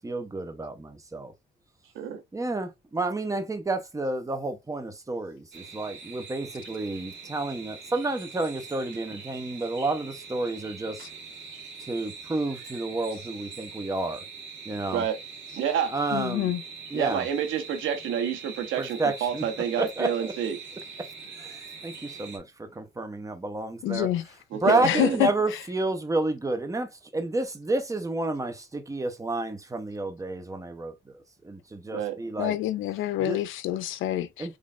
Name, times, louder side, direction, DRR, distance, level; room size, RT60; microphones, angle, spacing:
voice 1, 0.0-1.3 2.3-11.0 11.8-14.2 14.6-15.0 15.9-16.5 16.9-17.3 18.8-19.4 19.8-20.1 21.4-21.6 21.8-22.5 22.7-24.1 24.6-30.9 31.4-32.6 33.2-33.4 34.4-34.6, right 2 dB, 15° right, 0.8 m, -30 dB
sound 1, 5.5-22.4, right 5 dB, 65° right, 1.6 m, -43 dB
voice 2, 15.5-15.9 16.9-20.6 24.5-25.2 31.9-32.1, right 8 dB, 85° right, 0.9 m, -29 dB
voice 3, 16.1-16.6 23.8-24.3 24.8-25.6 32.4-34.6, left 13 dB, 80° left, 0.5 m, -27 dB
3.8 x 3.3 x 2.4 m
cardioid pair, 90°, 20 cm